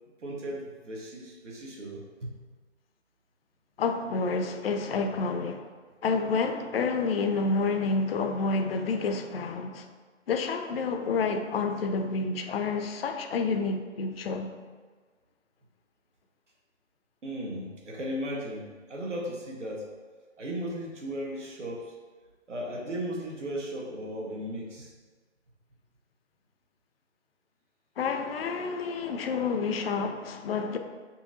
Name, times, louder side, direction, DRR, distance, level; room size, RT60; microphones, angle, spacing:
voice 1, 0.2-2.3 4.5-4.6 4.8-5.1 17.2-19.9 20.4-21.9 22.5-24.9, equal, 75° right, 1.1 m, -36 dB
voice 2, 3.8-5.7 6.0-9.9 10.3-14.5 28.0-30.8, left 4 dB, 55° left, 0.4 m, -29 dB
5.5 x 2.8 x 2.6 m
figure-of-eight pair, 135°, 36 cm